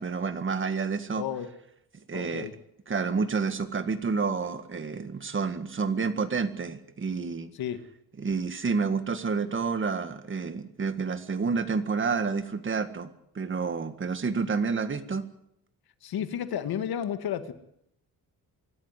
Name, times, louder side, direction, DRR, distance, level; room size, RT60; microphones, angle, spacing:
voice 1, 0.0-1.2 2.1-2.5 2.9-7.5 8.2-13.1 13.4-15.3, right 5 dB, 35° right, 10 dB, 1.8 m, -29 dB
voice 2, 1.1-1.5 2.1-2.5 7.5-7.8 16.0-17.5, left 9 dB, 85° left, 10 dB, 1.9 m, -32 dB
25.0 x 13.5 x 9.8 m, 0.77 s
cardioid pair, 140°, 36 cm